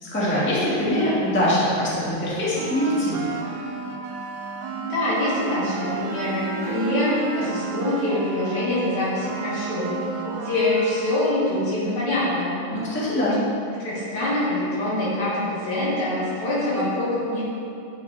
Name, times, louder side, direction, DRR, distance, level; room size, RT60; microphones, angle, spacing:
voice 1, 0.0-3.3 12.7-13.4, equal, 5° left, -9 dB, 0.9 m, -23 dB
sound 1, 2.6-11.4, right 5 dB, 80° right, 1.9 m, -33 dB
voice 2, 4.8-12.6 13.8-17.4, left 1 dB, 75° left, -8 dB, 3.4 m, -25 dB
10.0 x 5.6 x 3.4 m, 2.6 s
omnidirectional pair, 3.4 m